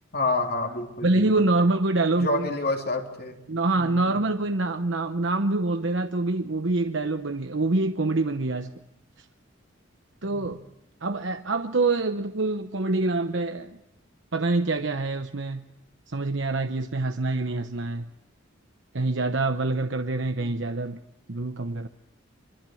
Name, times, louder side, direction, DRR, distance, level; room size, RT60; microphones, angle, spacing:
voice 1, 0.1-1.4 2.1-3.4 3.7-4.1 10.2-10.5 20.4-20.6, left 2 dB, 50° left, 3 dB, 3.3 m, -29 dB
voice 2, 1.0-2.5 3.5-8.7 10.2-10.6 11.0-13.8 14.3-15.6 16.1-18.1 18.9-21.0 21.3-21.9, right 2 dB, 65° right, 8 dB, 0.9 m, -25 dB
25.0 x 24.5 x 7.8 m, 0.86 s
head